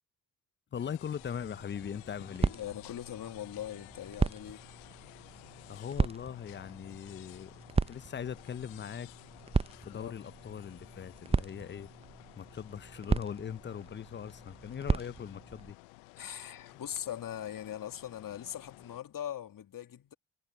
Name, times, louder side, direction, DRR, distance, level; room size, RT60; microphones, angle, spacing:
sound 1, 0.7-19.0, left 28 dB, 80° left, 0.7 m, -54 dB
voice 1, 0.7-2.5 5.7-7.5 7.9-9.1 9.8-11.9 12.4-15.8, left 8 dB, 30° left, 0.6 m, -40 dB
sound 2, 1.2-15.7, right 4 dB, 15° right, 0.5 m, -36 dB
voice 2, 2.4-4.6 9.9-10.2 16.2-20.1, left 10 dB, 55° left, 2.1 m, -41 dB
hypercardioid pair, 40°, 39 cm